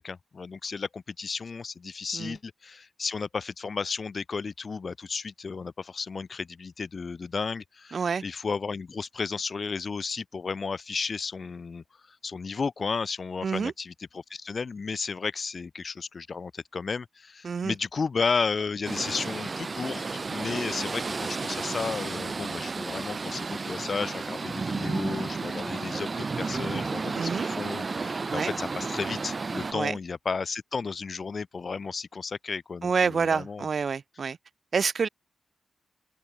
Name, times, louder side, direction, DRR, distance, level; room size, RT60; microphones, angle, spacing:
voice 1, 0.0-33.7, left 5 dB, 45° left, 2.2 m, -33 dB
voice 2, 7.9-8.2 13.4-13.7 17.4-17.7 27.1-27.5 28.3-28.5 29.7-30.0 32.8-34.4 34.7-35.1, right 5 dB, 55° right, 2.7 m, -27 dB
sound 1, 18.8-29.7, right 4 dB, 40° right, 5.5 m, -32 dB
open air
wide cardioid pair, 110°, 0 cm